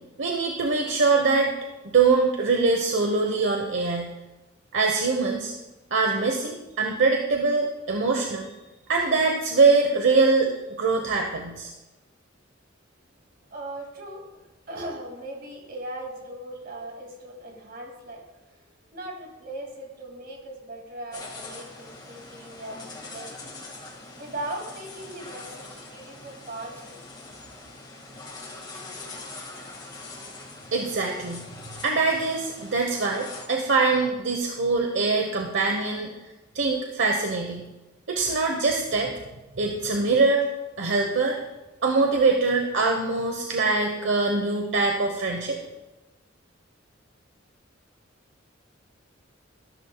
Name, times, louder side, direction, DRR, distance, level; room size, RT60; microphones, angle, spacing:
voice 1, 0.2-1.5 1.8-4.1 4.7-5.5 5.9-8.5 8.9-10.5 10.8-11.7 30.7-31.4 31.8-36.1 36.5-37.7 38.1-39.1 39.6-40.5 40.8-41.4 41.8-45.6, right 3 dB, 65° right, 2 dB, 1.0 m, -23 dB
voice 2, 13.5-18.4 18.9-23.5 24.2-27.0, right 1 dB, 50° right, 1 dB, 2.4 m, -39 dB
sound 1, 21.1-33.5, left 2 dB, 20° left, 1.9 m, -42 dB
13.5 x 12.5 x 2.3 m, 1.1 s
head